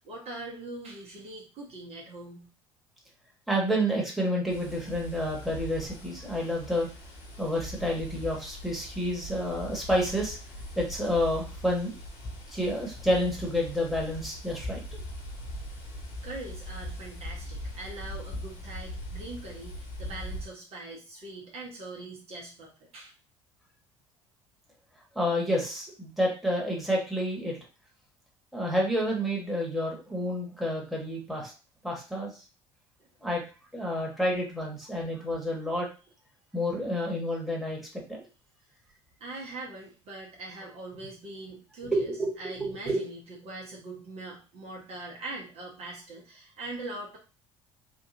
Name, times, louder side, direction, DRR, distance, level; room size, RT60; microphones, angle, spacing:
voice 1, 0.0-2.5 16.2-23.1 33.0-33.1 39.2-42.1 42.4-47.2, right 2 dB, 45° right, -2 dB, 1.1 m, -42 dB
voice 2, 3.5-6.9 7.4-10.4 10.8-12.0 12.5-15.0 25.1-27.6 28.5-31.5 31.8-32.3 33.2-33.5 33.7-35.9 36.5-37.8 38.1-38.2 41.9-42.3 42.6-43.0, equal, ahead, -2 dB, 1.5 m, -29 dB
sound 1, 4.5-20.5, equal, 55° left, 1.3 m, -41 dB
3.7 x 2.5 x 2.8 m, 0.33 s
figure-of-eight pair, 60°, 15 cm